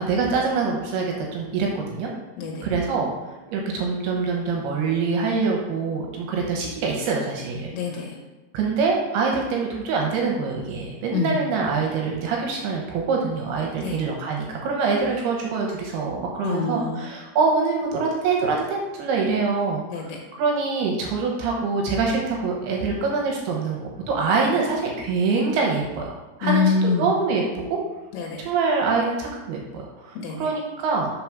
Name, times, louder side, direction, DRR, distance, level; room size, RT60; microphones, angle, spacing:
voice 1, 0.0-2.1 2.6-3.1 3.5-7.7 8.5-19.8 20.3-26.1 26.4-26.7 27.0-27.8 28.4-31.1, right 4 dB, 75° right, 0 dB, 2.7 m, -24 dB
voice 2, 2.4-2.7 7.7-8.2 11.1-11.4 13.8-14.0 16.4-17.0 19.9-20.2 24.3-24.4 26.4-27.0 28.1-28.4 30.1-30.5, left 5 dB, 75° left, -1 dB, 3.0 m, -25 dB
5.9 x 4.8 x 5.9 m, 1.1 s
omnidirectional pair, 5.0 m